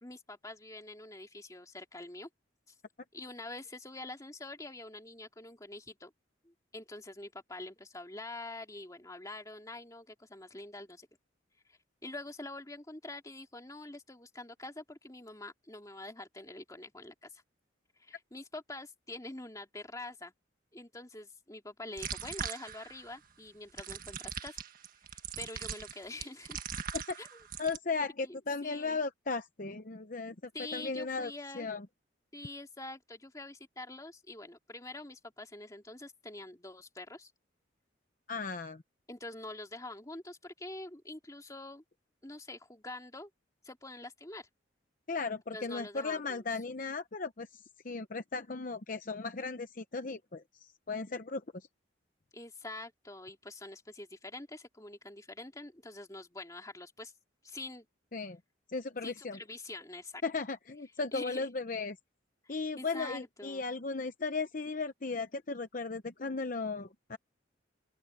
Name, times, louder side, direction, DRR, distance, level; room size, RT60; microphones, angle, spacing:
voice 1, 0.0-2.3 3.1-6.1 6.4-11.1 11.7-17.4 18.0-20.3 20.7-24.6 25.1-26.7 27.2-27.4 28.2-28.3 28.6-29.0 30.5-31.7 32.3-37.3 39.1-41.8 42.2-43.3 43.6-44.5 45.5-46.4 52.3-57.1 57.4-57.9 59.0-60.2 61.1-61.5 62.4-63.6, left 2 dB, 20° left, 2.3 m, -46 dB
sound 1, 22.0-23.1 23.8-27.8, right 7 dB, 45° right, 1.6 m, -40 dB
voice 2, 27.6-28.1 28.5-31.9 38.3-38.8 45.1-51.7 58.1-58.4 58.7-59.4 60.2-62.0 62.5-67.2, left 4 dB, 45° left, 0.8 m, -36 dB
open air
head